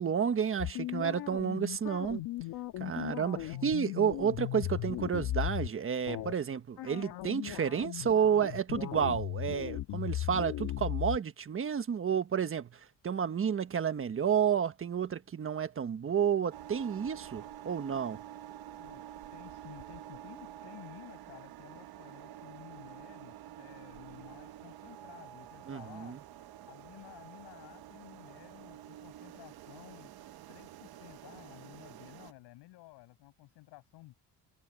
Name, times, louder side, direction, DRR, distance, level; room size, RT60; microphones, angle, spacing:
voice 1, 0.0-2.2 2.8-18.2 25.7-26.2, right 7 dB, 35° right, 1.4 m, -31 dB
sound 1, 0.6-5.7 6.1-6.3 6.8-11.2, left 14 dB, 70° left, 1.6 m, -37 dB
voice 2, 3.3-3.8 18.8-19.0 19.3-26.2 26.7-30.1 30.5-34.1, left 18 dB, 90° left, 7.2 m, -53 dB
sound 2, 16.5-32.3, right 12 dB, 65° right, 1.3 m, -49 dB
cardioid pair, 115°, 39 cm